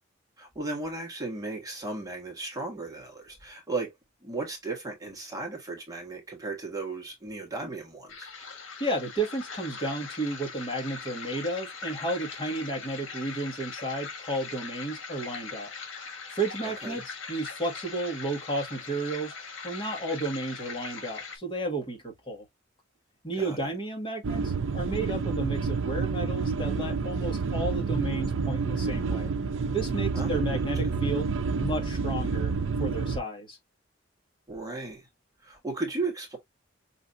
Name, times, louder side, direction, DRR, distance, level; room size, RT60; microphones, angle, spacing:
voice 1, 0.4-3.9 4.2-8.3 16.6-17.0 23.3-23.7 30.1-30.9 34.5-35.1 35.4-36.4, right 3 dB, 20° right, 1.4 m, -36 dB
sound 1, 8.1-21.4, left 5 dB, 70° left, 1.5 m, -41 dB
voice 2, 8.8-15.7 16.3-19.3 19.6-22.4 23.2-29.3 29.7-32.5 32.8-33.6, right 2 dB, 25° left, 1.7 m, -32 dB
sound 2, 24.2-33.2, right 4 dB, 70° right, 0.5 m, -29 dB
5.6 x 2.8 x 2.6 m
head